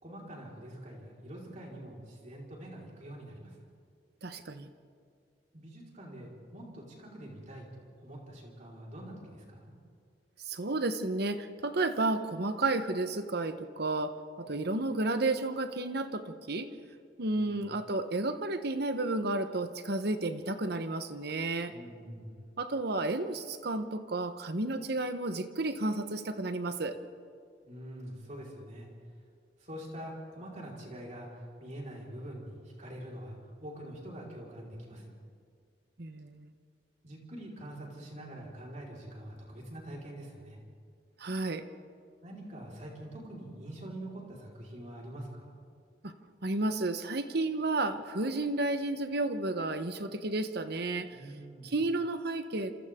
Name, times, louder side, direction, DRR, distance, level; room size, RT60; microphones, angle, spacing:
voice 1, 0.0-3.5 5.5-9.7 17.3-17.7 21.7-22.4 27.6-28.9 29.6-35.2 37.0-40.6 42.2-45.6 51.1-51.7, right 1 dB, 45° right, -3 dB, 4.8 m, -45 dB
voice 2, 4.2-4.7 10.5-16.7 17.2-21.7 22.6-27.0 36.0-36.5 41.2-41.6 46.0-46.1 46.4-51.1 51.6-52.7, right 2 dB, 60° right, 9 dB, 1.2 m, -32 dB
28.0 x 27.5 x 3.8 m, 2.2 s
head